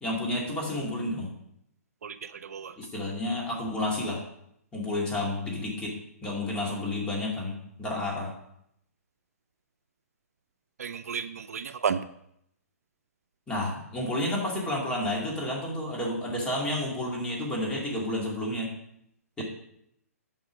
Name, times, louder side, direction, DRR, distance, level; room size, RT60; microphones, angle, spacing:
voice 1, 0.0-1.3 2.8-4.2 4.7-5.9 6.2-8.3 13.5-18.7 19.4-19.5, left 1 dB, 10° left, -3 dB, 2.5 m, -30 dB
voice 2, 10.8-12.0, right 7 dB, 75° right, 11 dB, 0.5 m, -31 dB
8.7 x 5.3 x 6.3 m, 0.75 s
hypercardioid pair, 145°, 8 cm